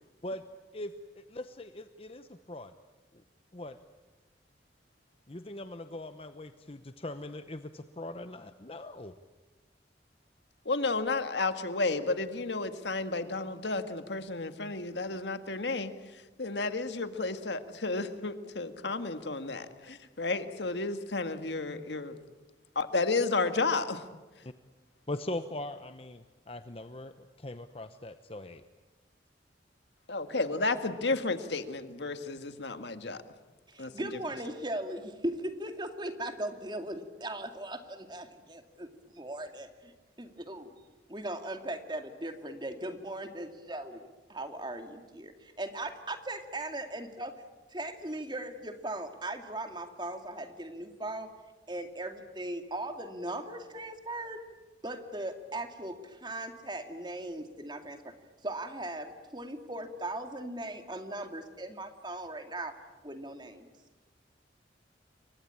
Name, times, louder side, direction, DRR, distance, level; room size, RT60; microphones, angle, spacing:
voice 1, 0.7-2.7 3.5-3.8 5.3-9.1 24.4-24.5 25.1-27.1 27.4-28.6, left 1 dB, 30° left, 10 dB, 0.9 m, -41 dB
voice 2, 10.7-15.9 16.4-22.2 22.8-24.0 30.1-33.2 33.8-33.9, left 3 dB, 75° left, 9 dB, 1.7 m, -32 dB
voice 3, 33.7-38.9 39.1-40.7 41.1-44.0 44.3-47.4 47.7-51.3 51.7-54.4 54.8-58.1 58.4-62.8 63.0-63.7, right 1 dB, 25° right, 7 dB, 2.3 m, -38 dB
29.0 x 23.0 x 8.8 m, 1.2 s
head